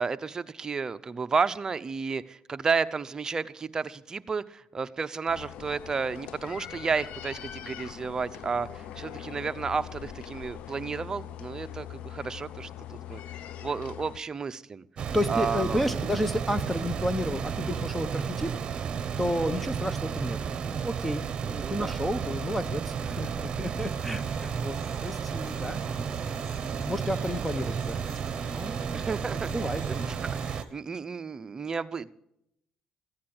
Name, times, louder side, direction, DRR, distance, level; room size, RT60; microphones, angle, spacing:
voice 1, 0.0-13.2 13.6-14.8 15.3-16.1 21.6-22.0 28.9-29.5 29.8-32.1, right 5 dB, 30° right, 12 dB, 0.7 m, -32 dB
sound 1, 5.3-14.2, left 11 dB, 75° left, 0.7 m, -42 dB
sound 2, 15.0-30.6, right 6 dB, 50° right, 1.1 m, -32 dB
voice 2, 15.1-18.5 18.9-24.8 25.0-28.0 28.5-29.0 29.5-30.2, equal, 5° left, 12 dB, 1.0 m, -32 dB
sound 3, 23.7-30.6, left 3 dB, 40° left, 3.9 m, -50 dB
15.0 x 9.6 x 8.8 m, 0.79 s
cardioid pair, 85°, 2 cm